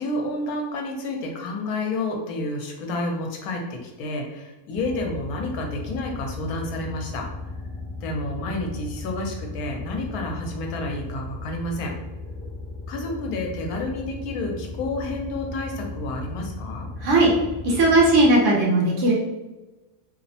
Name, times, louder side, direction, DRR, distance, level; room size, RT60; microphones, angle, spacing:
voice 1, 0.0-7.3 8.0-11.9 12.9-16.9, left 2 dB, 80° left, 1 dB, 1.0 m, -30 dB
sound 1, 4.7-18.3, left 2 dB, 60° left, 0.9 m, -36 dB
voice 2, 17.0-17.3 17.6-19.1, right 2 dB, 65° right, -3 dB, 0.8 m, -17 dB
2.7 x 2.0 x 2.6 m, 1.1 s
omnidirectional pair, 1.5 m